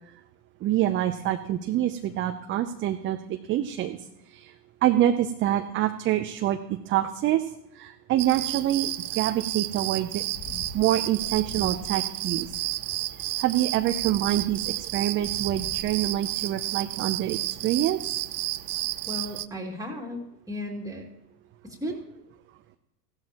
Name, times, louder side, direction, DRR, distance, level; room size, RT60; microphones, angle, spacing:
voice 1, 0.6-4.0 4.3-4.5 4.8-6.6 6.9-7.4 7.7-10.2 10.7-12.6 13.4-18.0, right 12 dB, 25° right, 7 dB, 0.6 m, -26 dB
sound 1, 8.2-19.5, right 16 dB, 65° right, 0.7 m, -31 dB
sound 2, 10.2-10.8 11.1-13.3 13.8-16.7, left 5 dB, 30° left, 1.6 m, -44 dB
voice 2, 19.1-21.1 21.6-22.1, left 1 dB, 5° right, 0 dB, 2.4 m, -35 dB
16.0 x 12.0 x 3.0 m, 0.87 s
hypercardioid pair, 90°, 48 cm